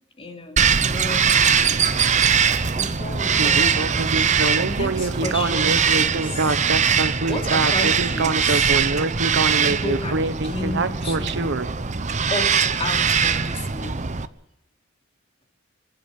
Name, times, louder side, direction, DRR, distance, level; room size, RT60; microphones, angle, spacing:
voice 1, 0.2-1.9 2.7-6.6 7.3-8.8 9.6-11.5 12.3-14.0, left 1 dB, 30° left, 3 dB, 2.9 m, -33 dB
Bird vocalization bird call bird song, 0.6-14.3, right 6 dB, 35° right, 0.9 m, -21 dB
Speech synthesizer, 3.3-11.7, right 3 dB, 60° right, 0.9 m, -24 dB
26.5 x 12.0 x 8.2 m, 0.82 s
head